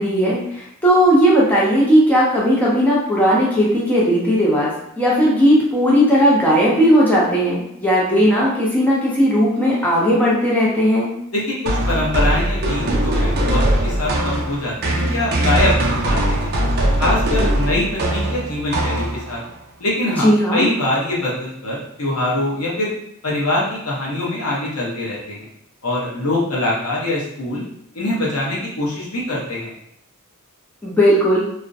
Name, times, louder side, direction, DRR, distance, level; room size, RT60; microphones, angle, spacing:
voice 1, 0.0-4.7 5.0-11.1 20.2-20.7 30.8-31.4, equal, 5° left, -6 dB, 0.5 m, -16 dB
voice 2, 11.3-16.5 17.0-19.4 19.8-22.9 23.2-25.5 25.8-27.6 27.9-29.7, left 1 dB, 80° left, -5 dB, 0.8 m, -23 dB
sound 1, 11.7-19.5, right 1 dB, 50° right, 0.4 m, -20 dB
2.4 x 2.1 x 2.5 m, 0.72 s
head